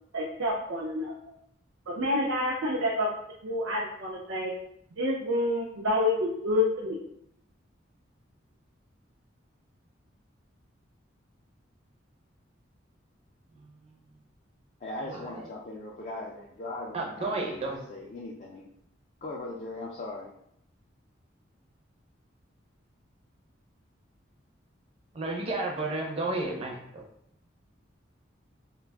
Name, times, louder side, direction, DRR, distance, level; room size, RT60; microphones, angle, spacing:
voice 1, 0.1-1.1 1.9-3.1 3.4-4.5 5.0-7.0, left 1 dB, 85° right, -3 dB, 0.5 m, -28 dB
voice 2, 13.5-13.9 15.0-15.5 16.9-17.8 25.1-27.0, right 2 dB, 30° right, -1 dB, 0.5 m, -33 dB
voice 3, 14.8-18.7 19.2-20.3, left 2 dB, 35° left, -3 dB, 0.3 m, -39 dB
2.4 x 2.2 x 3.4 m, 0.72 s
head